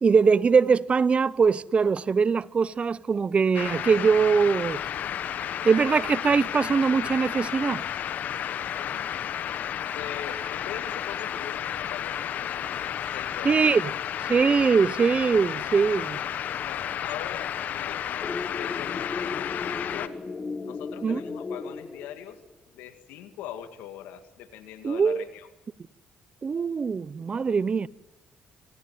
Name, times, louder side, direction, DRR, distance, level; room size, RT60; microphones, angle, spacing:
voice 1, 0.0-4.8 5.6-7.8 13.4-13.8 14.3-16.2 21.0-21.2 24.8-25.2 26.4-27.9, right 5 dB, 40° right, 0.8 m, -22 dB
sound 1, 3.5-20.1, left 9 dB, 65° left, 1.3 m, -32 dB
voice 2, 8.7-9.1 9.9-13.8 16.6-20.1 20.6-22.4 22.7-25.5, left 10 dB, 85° left, 2.2 m, -42 dB
sound 2, 18.2-22.5, left 4 dB, 35° left, 1.6 m, -36 dB
26.5 x 18.0 x 9.6 m
supercardioid pair, 60°, 3 cm